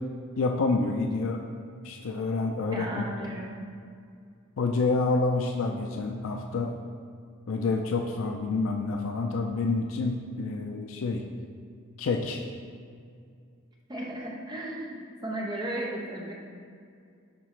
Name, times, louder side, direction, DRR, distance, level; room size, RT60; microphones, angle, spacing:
voice 1, 0.4-1.4 1.8-3.0 4.6-6.7 7.5-11.2 12.0-12.4, left 3 dB, 70° left, 2 dB, 0.4 m, -28 dB
voice 2, 2.7-3.5 13.9-16.3, right 1 dB, 20° right, -2 dB, 0.9 m, -35 dB
10.5 x 3.9 x 3.2 m, 2.3 s
head